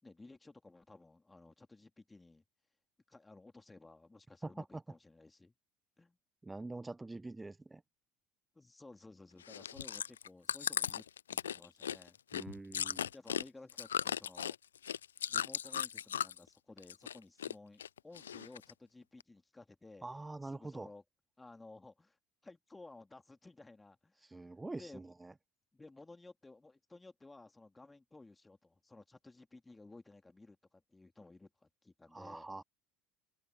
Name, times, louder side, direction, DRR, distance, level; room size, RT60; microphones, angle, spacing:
voice 1, 0.0-2.4 3.1-5.5 6.0-6.2 8.5-12.2 13.1-14.5 15.3-20.1 20.4-21.0 21.4-22.2 22.4-24.5 24.7-25.1 25.7-32.5, left 2 dB, 10° left, 3.2 m, -56 dB
voice 2, 4.4-4.8 6.4-7.8 12.3-13.1 20.0-20.9 24.2-25.3 32.1-32.6, right 2 dB, 10° right, 0.5 m, -45 dB
Chewing mastication, 9.4-16.5 16.8-17.5 17.8-18.7 19.2-19.3, left 9 dB, 75° left, 0.6 m, -37 dB
open air
figure-of-eight pair, 70°, 0 cm